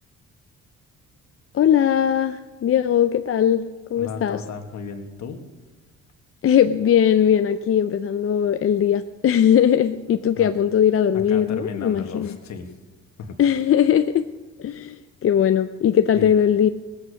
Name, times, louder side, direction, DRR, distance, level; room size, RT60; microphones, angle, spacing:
voice 1, 1.5-3.7 3.9-4.4 6.4-12.3 13.4-14.2 14.6-16.7, left 9 dB, 45° left, 9 dB, 0.6 m, -19 dB
voice 2, 4.0-5.4 10.3-10.5 11.1-12.7 13.2-13.4 16.1-16.3, left 5 dB, 65° left, 5 dB, 1.8 m, -34 dB
19.0 x 8.5 x 6.5 m, 1.2 s
cardioid pair, 90°, 30 cm